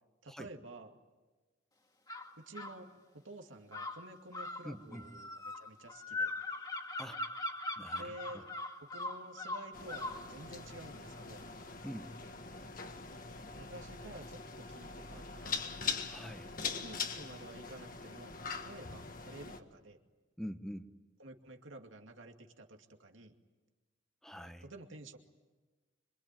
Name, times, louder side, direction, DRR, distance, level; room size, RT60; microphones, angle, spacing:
voice 1, 0.2-0.9 2.4-5.3 5.6-6.3 8.0-8.4 8.9-11.4 13.6-15.7 16.6-20.0 21.2-23.3 24.6-25.2, right 2 dB, 90° right, 3 dB, 2.4 m, -51 dB
sound 1, 2.1-2.8 3.7-10.2, left 2 dB, 20° left, 2.0 m, -40 dB
voice 2, 4.6-5.1 7.0-7.2 7.8-8.5 11.8-12.1 16.1-16.5 20.4-20.9 24.2-24.7, equal, ahead, 8 dB, 1.0 m, -45 dB
sound 2, 9.7-19.6, left 5 dB, 45° left, 1.7 m, -42 dB
26.0 x 24.0 x 9.1 m, 1.3 s
head